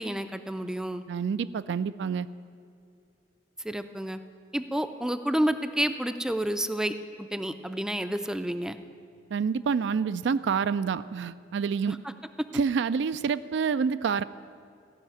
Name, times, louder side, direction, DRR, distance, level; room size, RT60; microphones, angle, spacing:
voice 1, 0.0-1.0 3.6-4.2 4.5-8.8 11.9-12.1 12.5-12.6, right 1 dB, 5° right, 10 dB, 0.4 m, -30 dB
voice 2, 1.1-2.3 9.3-12.0 12.5-14.2, right 6 dB, 70° right, 14 dB, 0.3 m, -27 dB
15.0 x 5.7 x 9.0 m, 2.4 s
head